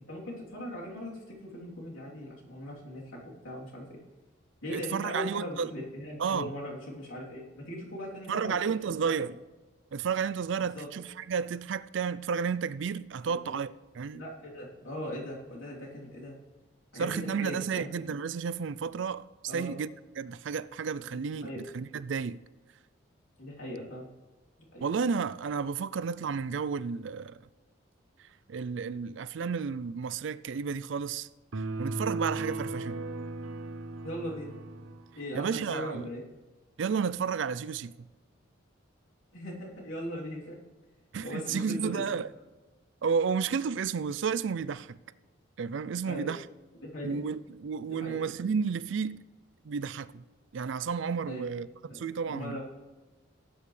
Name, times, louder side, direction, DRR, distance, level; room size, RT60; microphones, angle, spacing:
voice 1, 0.1-3.2 3.4-4.0 4.6-8.6 8.8-9.1 10.7-10.9 13.3-13.5 14.1-16.3 16.9-17.9 19.5-19.7 21.4-21.6 23.4-24.0 24.7-24.8 34.0-34.5 35.1-36.2 39.3-40.6 41.2-42.0 46.0-46.3 46.8-47.2 47.9-48.2 51.3-51.5 51.8-52.6, equal, 85° left, 3.3 m, -39 dB
voice 2, 4.7-5.7 6.2-6.5 8.3-9.4 9.9-14.2 16.9-19.9 20.2-22.4 24.8-27.4 28.2-31.3 31.8-33.0 35.3-36.1 36.8-38.1 41.1-42.3 43.0-45.0 45.6-46.4 47.0-49.2 49.6-50.2 50.5-51.7 51.9-52.6, right 6 dB, 70° right, 0.4 m, -32 dB
sound 1, 31.5-35.1, right 2 dB, 85° right, 0.8 m, -36 dB
17.5 x 8.8 x 3.3 m
head